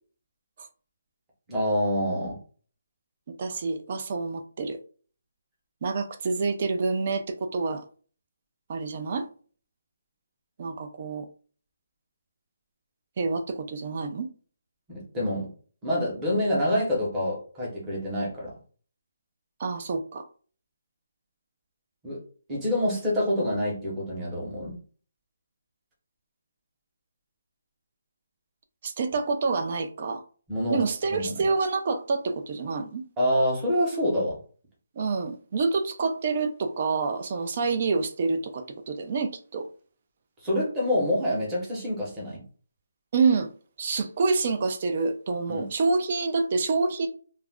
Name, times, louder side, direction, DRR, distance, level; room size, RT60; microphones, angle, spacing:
voice 1, 1.5-2.4 14.9-15.5 15.8-18.5 22.0-22.2 22.5-24.8 30.5-30.8 31.1-31.4 33.2-34.4 40.4-42.4 45.5-45.7, left 1 dB, 10° right, 0.9 m, -27 dB
voice 2, 3.3-4.8 5.8-7.8 8.7-9.3 10.6-11.3 13.2-14.3 19.6-20.3 28.8-30.2 30.7-33.0 34.9-39.7 43.1-43.5 43.8-47.1, right 4 dB, 30° right, 0.4 m, -27 dB
2.4 x 2.1 x 3.4 m
hypercardioid pair, 175°, 0 cm